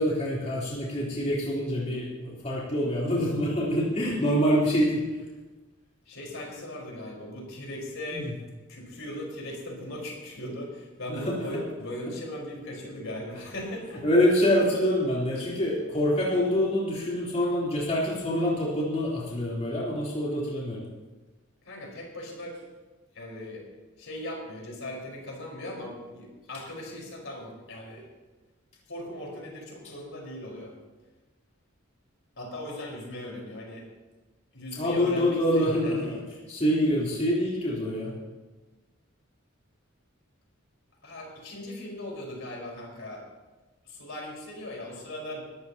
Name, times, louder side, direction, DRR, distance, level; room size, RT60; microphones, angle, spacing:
voice 1, 0.0-5.0 8.1-8.3 11.1-11.3 14.0-20.8 34.7-36.2 36.5-38.1, equal, 35° left, -6 dB, 3.6 m, -26 dB
voice 2, 6.1-8.3 8.7-14.0 21.6-22.6 23.1-23.6 24.0-28.1 28.9-30.7 32.4-33.8 34.5-36.2 41.0-43.2 43.9-45.4, left 1 dB, 70° left, -1 dB, 4.6 m, -38 dB
22.5 x 13.5 x 2.9 m, 1.2 s
head